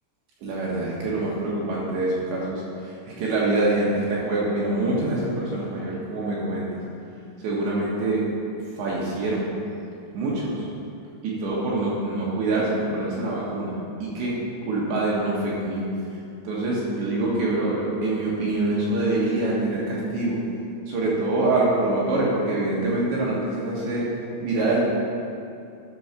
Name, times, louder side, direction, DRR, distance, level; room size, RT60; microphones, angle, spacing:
voice 1, 0.4-6.8 7.4-8.2 8.8-9.5 10.1-10.7 11.2-14.4 14.6-15.9 16.4-20.4 20.9-24.1 24.4-24.8, right 2 dB, 70° right, -5 dB, 3.0 m, -25 dB
11.0 x 4.6 x 5.8 m, 2.6 s
omnidirectional pair, 5.9 m